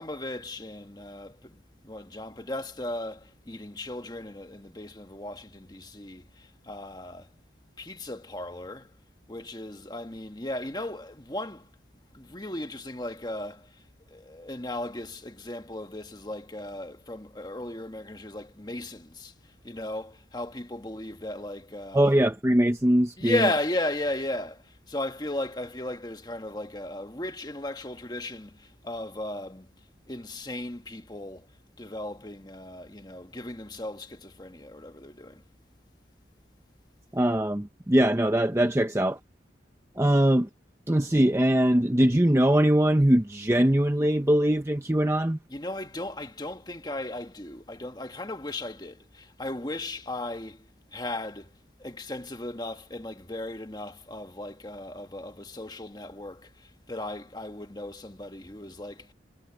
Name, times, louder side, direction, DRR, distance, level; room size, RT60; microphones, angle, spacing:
voice 1, 0.0-7.3 7.8-8.9 9.3-11.7 12.1-13.7 14.1-19.3 19.6-22.2 23.2-29.7 30.1-31.5 31.8-35.4 45.5-50.6 50.9-51.5 51.8-59.1, left 1 dB, 20° left, 1.3 m, -36 dB
voice 2, 21.9-23.5 37.1-39.2 40.0-40.5 40.9-45.4, right 1 dB, 15° right, 0.7 m, -22 dB
head